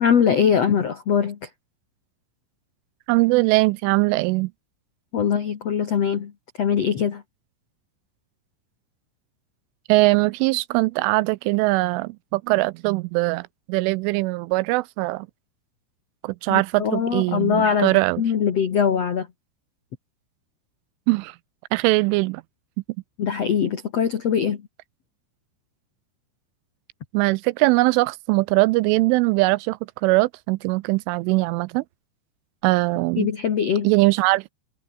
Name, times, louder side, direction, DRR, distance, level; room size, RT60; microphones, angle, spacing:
voice 1, 0.0-1.5 5.1-6.3 6.6-7.2 16.5-19.3 23.2-24.6 33.2-33.9, left 7 dB, 75° left, 1.5 m, -22 dB
voice 2, 3.1-4.5 9.9-15.3 16.2-18.2 21.1-21.4 21.7-22.4 27.1-31.8 32.6-33.3 33.8-34.5, right 23 dB, 85° right, 2.9 m, -21 dB
omnidirectional pair, 5.9 m